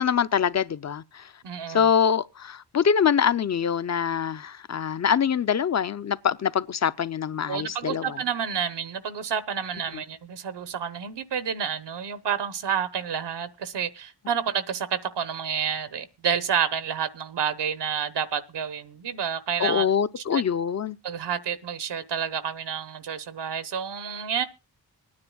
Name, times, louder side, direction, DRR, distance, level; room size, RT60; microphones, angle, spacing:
voice 1, 0.0-1.3 1.7-8.2 19.6-21.0, left 7 dB, 40° left, 0.6 m, -24 dB
voice 2, 1.4-1.9 7.5-19.9 20.2-20.4 21.0-24.4, right 7 dB, 80° right, 1.0 m, -29 dB
25.5 x 9.7 x 2.3 m
cardioid pair, 55°, 41 cm